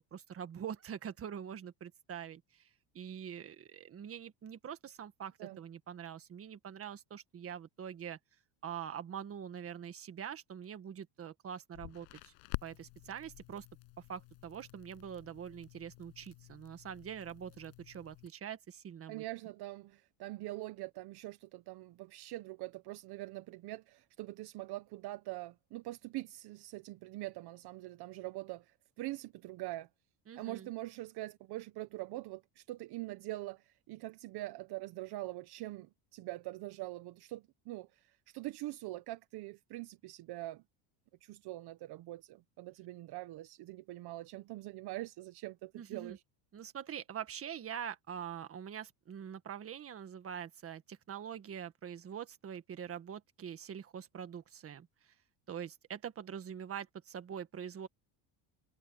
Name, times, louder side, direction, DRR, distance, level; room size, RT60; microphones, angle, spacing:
voice 1, 0.0-2.7 2.9-8.2 8.6-12.3 12.6-13.6 14.1-19.2 30.3-30.7 45.7-46.2 46.5-55.1 55.5-57.9, right 8 dB, 30° right, 1.6 m, -44 dB
Crackle, 11.7-18.3, left 31 dB, 75° left, 7.3 m, -49 dB
voice 2, 19.1-29.9 30.4-40.6 41.2-46.2, right 18 dB, 50° right, 1.1 m, -44 dB
cardioid pair, 145°, 48 cm